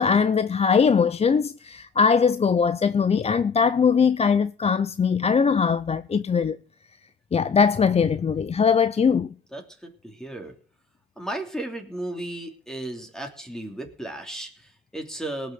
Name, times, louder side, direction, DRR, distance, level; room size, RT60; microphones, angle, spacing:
voice 1, 0.0-6.6 7.3-9.3, left 6 dB, 30° left, 0.6 m, -21 dB
voice 2, 9.5-10.5 11.2-15.5, right 1 dB, 5° left, 3.1 m, -35 dB
18.0 x 6.7 x 7.6 m
cardioid pair, 90°, 20 cm